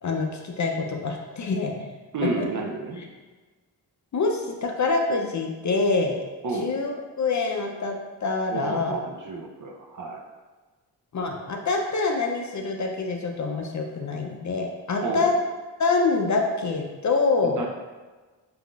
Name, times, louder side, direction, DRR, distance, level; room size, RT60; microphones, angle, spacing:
voice 1, 0.0-1.9 2.2-2.5 3.0-3.1 4.1-6.2 6.5-6.9 7.2-9.0 11.1-15.3 15.8-17.7, left 3 dB, 40° left, 2 dB, 0.5 m, -26 dB
voice 2, 2.1-3.0 6.4-6.7 8.5-10.2 15.0-15.3 17.4-17.7, right 3 dB, 45° right, 2 dB, 0.5 m, -31 dB
3.5 x 2.6 x 2.3 m, 1.3 s
supercardioid pair, 40°, 47 cm